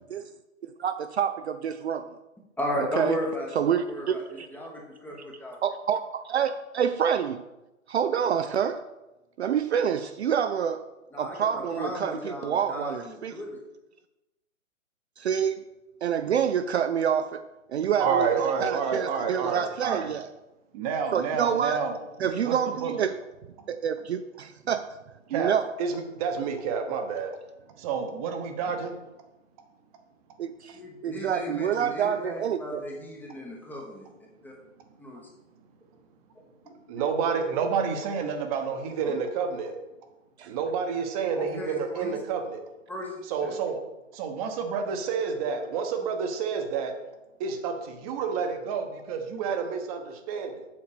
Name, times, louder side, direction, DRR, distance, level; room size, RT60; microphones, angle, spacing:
voice 1, 0.6-2.1 3.0-3.2 3.6-4.5 5.6-7.4 7.9-8.8 9.4-10.9 11.2-13.3 15.2-15.6 16.0-18.3 18.6-20.3 21.1-21.8 22.2-23.1 23.7-25.0 25.3-25.6 30.4-32.8 40.4-40.5, right 8 dB, 55° right, 10 dB, 0.5 m, -27 dB
voice 2, 2.6-5.6 11.1-13.6 30.7-34.1 34.4-34.5 35.0-35.3 37.1-37.2 39.0-39.2 41.3-42.1 42.9-43.6, left 1 dB, 5° left, -1 dB, 0.9 m, -35 dB
voice 3, 18.0-20.1 20.7-23.0 25.3-25.5 25.8-27.4 27.8-28.9 36.7-39.8 40.5-42.6 43.3-43.8 44.1-46.9 47.4-50.7, right 6 dB, 30° right, 6 dB, 1.0 m, -29 dB
7.4 x 5.6 x 4.9 m, 0.98 s
figure-of-eight pair, 130°, 40 cm